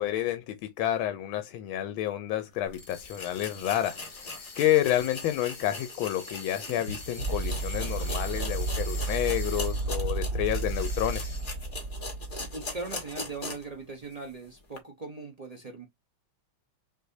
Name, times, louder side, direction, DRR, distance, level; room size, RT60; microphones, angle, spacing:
voice 1, 0.0-11.3, left 12 dB, 85° left, 1.4 m, -29 dB
sound 1, 2.6-2.7 3.1-13.8 14.1-14.2 14.7-14.8, left 3 dB, 30° left, 1.1 m, -41 dB
sound 2, 2.7-10.1 10.5-11.6, left 3 dB, 60° left, 2.5 m, -45 dB
sound 3, 5.0-13.1, right 3 dB, 50° right, 1.2 m, -33 dB
voice 2, 12.5-15.8, right 3 dB, 70° right, 0.3 m, -40 dB
6.0 x 2.7 x 2.7 m
omnidirectional pair, 2.2 m